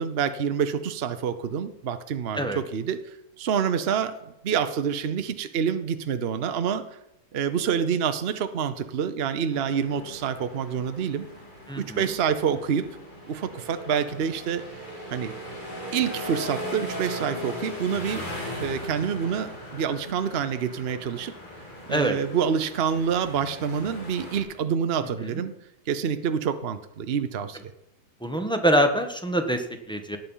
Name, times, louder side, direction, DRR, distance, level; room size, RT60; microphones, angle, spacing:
voice 1, 0.0-3.0 3.4-6.8 7.3-11.3 11.8-12.8 13.3-14.7 15.1-15.4 15.9-18.3 18.6-21.3 21.9-25.5 25.9-27.7, right 7 dB, 65° right, 9 dB, 0.5 m, -27 dB
sound 1, 9.5-24.4, equal, 20° left, 3.4 m, -39 dB
voice 2, 11.7-12.1 21.9-22.2 25.2-25.4 28.2-30.2, equal, 5° left, 5 dB, 0.8 m, -25 dB
18.0 x 7.6 x 5.6 m, 0.85 s
omnidirectional pair, 2.2 m